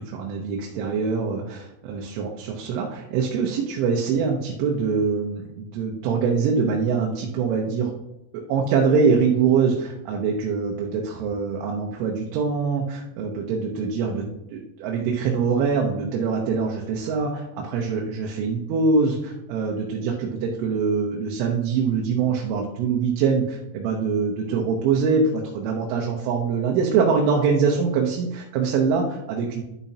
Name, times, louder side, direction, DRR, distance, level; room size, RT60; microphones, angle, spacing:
voice 1, 0.0-7.9 8.3-14.2 14.5-29.6, right 5 dB, 85° right, -1 dB, 3.4 m, -24 dB
12.5 x 7.1 x 2.8 m, 0.89 s
omnidirectional pair, 5.5 m